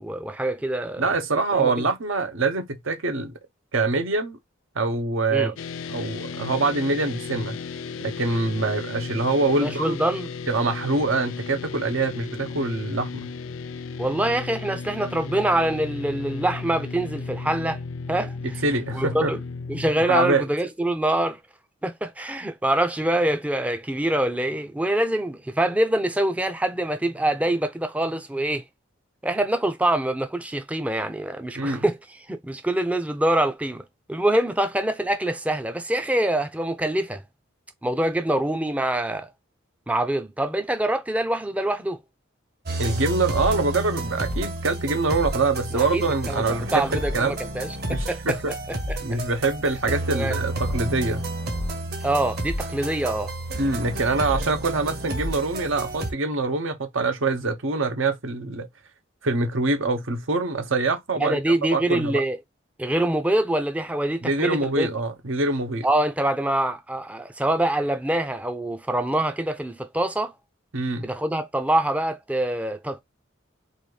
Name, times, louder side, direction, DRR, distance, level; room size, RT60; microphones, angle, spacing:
voice 1, 0.0-1.0 1.5-1.9 5.3-5.5 9.6-10.3 14.0-17.8 18.1-18.6 18.9-19.4 19.7-21.4 21.8-28.6 29.2-37.2 37.8-39.3 39.9-42.0 45.7-48.4 48.7-49.2 50.1-50.4 52.0-53.3 61.2-62.4 62.8-64.9 65.8-70.3 71.0-73.0, right 1 dB, 5° right, 0.4 m, -25 dB
voice 2, 1.0-3.3 3.7-4.4 4.8-5.5 5.9-7.6 8.0-10.0 10.5-13.3 18.4-19.3 20.0-20.5 31.6-31.8 42.8-47.3 47.9-48.5 49.0-51.3 53.6-58.7 59.2-61.4 61.7-62.2 64.2-65.9 70.7-71.1, right 3 dB, 80° right, 0.9 m, -24 dB
sound 1, 5.6-19.9, left 4 dB, 75° left, 0.4 m, -35 dB
sound 2, 42.7-56.1, right 1 dB, 50° right, 1.1 m, -30 dB
4.1 x 2.6 x 3.2 m
head